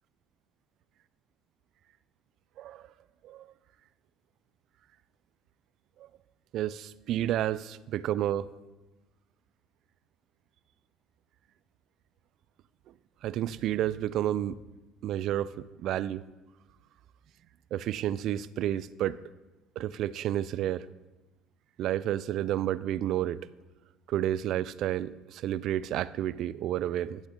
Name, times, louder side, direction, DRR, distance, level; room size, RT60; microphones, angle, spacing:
voice 1, 2.6-2.9 3.2-3.5 6.5-8.5 13.2-14.6 15.0-16.3 17.7-19.2 19.8-20.9 21.8-23.4 24.1-27.2, right 12 dB, 65° right, 18 dB, 0.4 m, -30 dB
11.5 x 7.8 x 3.7 m, 1.1 s
hypercardioid pair, 70°, 0 cm